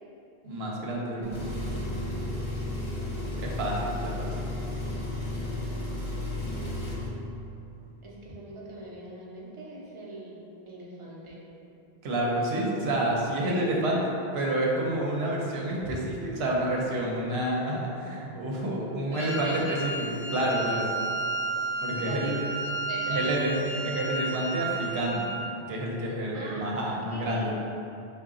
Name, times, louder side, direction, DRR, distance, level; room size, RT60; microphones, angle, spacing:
voice 1, 0.4-1.4 3.4-4.3 12.0-20.9 21.8-22.4 23.1-23.5 23.8-25.3 25.7-27.5, right 1 dB, 80° right, -3 dB, 0.8 m, -29 dB
voice 2, 1.1-2.4 8.0-11.4 13.4-13.7 15.8-15.9 19.1-19.8 22.0-22.3 22.6-23.6 26.3-27.5, right 2 dB, 40° right, -5 dB, 0.5 m, -41 dB
Engine, 1.2-7.1, left 1 dB, 50° left, 1.0 m, -33 dB
Wind instrument woodwind instrument, 19.1-25.5, right 2 dB, 30° left, 0.3 m, -33 dB
3.8 x 2.3 x 3.6 m, 2.9 s
omnidirectional pair, 1.1 m